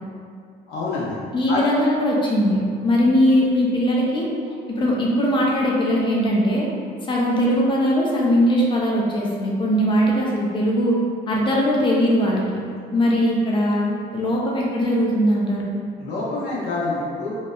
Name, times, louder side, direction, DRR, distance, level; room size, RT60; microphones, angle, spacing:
voice 1, 0.7-1.2 1.5-1.6 16.0-17.3, left 2 dB, 85° left, -6 dB, 0.7 m, -26 dB
voice 2, 1.3-4.3 4.7-6.7 7.1-11.0 11.3-12.4 12.9-15.7, equal, 30° left, -3 dB, 0.5 m, -20 dB
2.8 x 2.0 x 2.3 m, 2.2 s
cardioid pair, 110°, 17 cm